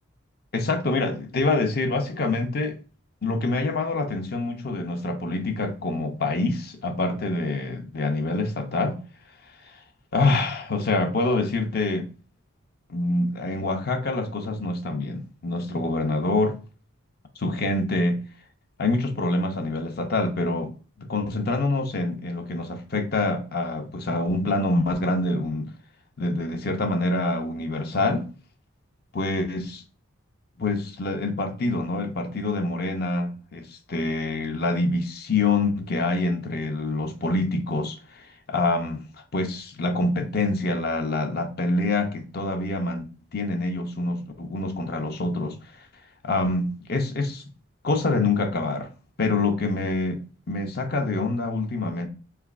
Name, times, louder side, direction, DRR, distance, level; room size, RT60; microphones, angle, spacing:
voice 1, 0.5-2.8 3.2-9.0 10.1-12.1 12.9-16.6 17.4-18.2 18.8-20.7 21.0-25.7 26.2-28.3 29.1-29.8 30.6-39.0 39.3-45.6 46.2-47.4 47.8-48.9 49.2-52.1, left 2 dB, 45° left, 0.5 m, -26 dB
3.9 x 3.2 x 2.4 m
head